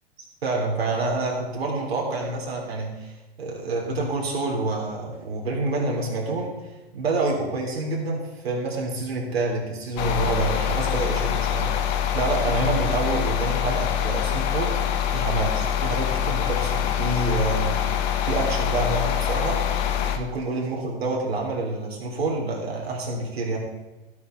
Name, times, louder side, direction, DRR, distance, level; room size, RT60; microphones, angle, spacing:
voice 1, 0.4-3.1 3.4-6.5 6.9-14.8 15.1-17.8 18.0-19.6 20.2-23.6, right 2 dB, 85° right, -2 dB, 3.6 m, -27 dB
sound 1, 10.0-20.2, left 9 dB, 45° left, 1.4 m, -25 dB
13.0 x 8.4 x 4.5 m, 1.1 s
hypercardioid pair, 125°, 30 cm